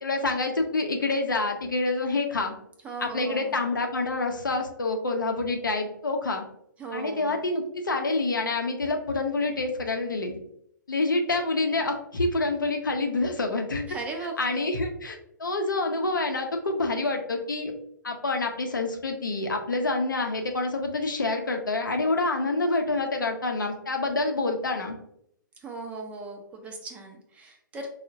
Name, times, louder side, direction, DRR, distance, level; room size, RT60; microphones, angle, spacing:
voice 1, 0.0-2.5 3.0-6.4 6.9-10.4 10.9-13.9 14.4-17.7 18.0-25.0, left 2 dB, 75° left, 4 dB, 0.6 m, -27 dB
voice 2, 2.8-3.6 6.8-7.4 13.9-14.7 25.6-27.9, right 3 dB, 10° right, 2 dB, 0.4 m, -38 dB
4.4 x 2.1 x 2.5 m, 0.73 s
figure-of-eight pair, 120°, 11 cm